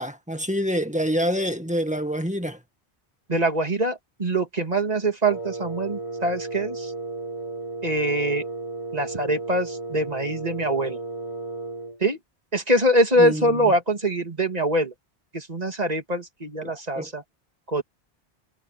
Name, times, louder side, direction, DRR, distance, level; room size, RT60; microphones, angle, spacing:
voice 1, 0.0-2.6 13.2-13.7 16.6-17.1, equal, 5° right, 1.8 m, -27 dB
voice 2, 3.3-6.9 7.8-8.4 8.9-11.0 12.0-12.2 12.5-14.9 15.3-17.2 17.7-17.8, right 1 dB, 35° right, 2.8 m, -23 dB
Wind instrument woodwind instrument, 5.2-12.0, right 3 dB, 30° left, 3.3 m, -34 dB
omnidirectional pair, 1.1 m